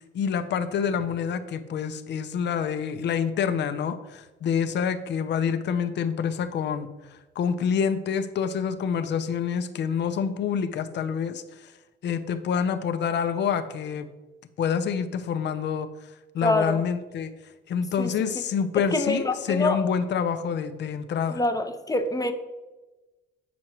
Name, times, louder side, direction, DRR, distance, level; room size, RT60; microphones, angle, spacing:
voice 1, 0.1-6.9 7.4-11.4 12.0-14.1 14.6-15.9 16.3-17.3 17.7-21.4, left 7 dB, 60° left, 0.6 m, -27 dB
voice 2, 16.4-16.8 18.0-18.1 18.9-19.8 21.3-22.3, left 2 dB, 20° left, 0.7 m, -25 dB
7.7 x 6.0 x 2.9 m
cardioid pair, 90°, 20 cm